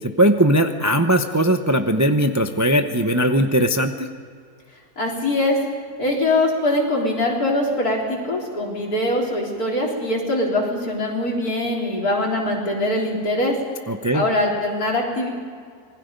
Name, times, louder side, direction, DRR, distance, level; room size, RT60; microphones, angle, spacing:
voice 1, 0.0-4.1 13.9-14.2, right 1 dB, 20° right, 6 dB, 0.5 m, -19 dB
voice 2, 5.0-5.6 6.0-13.6 14.1-15.3, left 1 dB, 65° left, -2 dB, 4.3 m, -22 dB
27.0 x 20.5 x 5.3 m, 2.1 s
omnidirectional pair, 1.7 m